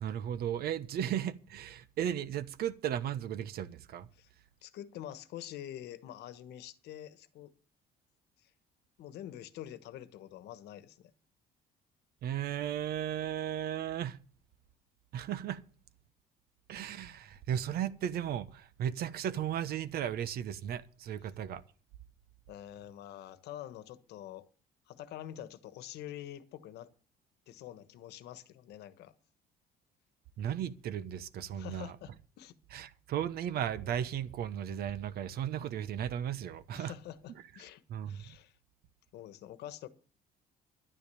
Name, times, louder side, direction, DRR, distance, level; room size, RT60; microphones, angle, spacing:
voice 1, 0.0-4.1 12.2-14.2 15.1-15.6 16.7-21.6 30.4-31.9 32.7-36.9 37.9-38.3, right 10 dB, 65° right, 1.1 m, -35 dB
voice 2, 4.6-7.5 8.4-8.5 9.0-11.1 22.5-24.4 24.9-26.9 27.5-29.1 31.5-32.6 36.7-38.5 39.1-39.9, left 12 dB, 80° left, 1.2 m, -46 dB
11.5 x 10.0 x 6.9 m
cardioid pair, 110°, 17 cm